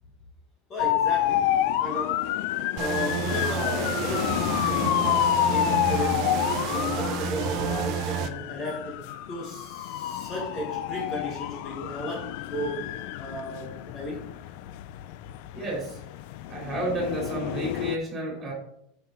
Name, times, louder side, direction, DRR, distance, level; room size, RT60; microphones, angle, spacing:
voice 1, 0.7-1.5 1.8-2.2 2.7-6.3 6.7-9.0 9.3-12.9 13.2-14.3, equal, 25° left, -1 dB, 1.3 m, -35 dB
sound 1, 0.8-18.0, left 12 dB, 55° left, 0.4 m, -29 dB
sound 2, 2.8-8.3, right 11 dB, 40° right, 0.6 m, -30 dB
voice 2, 15.5-16.0 16.5-18.5, right 1 dB, 15° right, -2 dB, 3.1 m, -31 dB
8.0 x 5.7 x 4.3 m, 0.76 s
supercardioid pair, 170°, 0 cm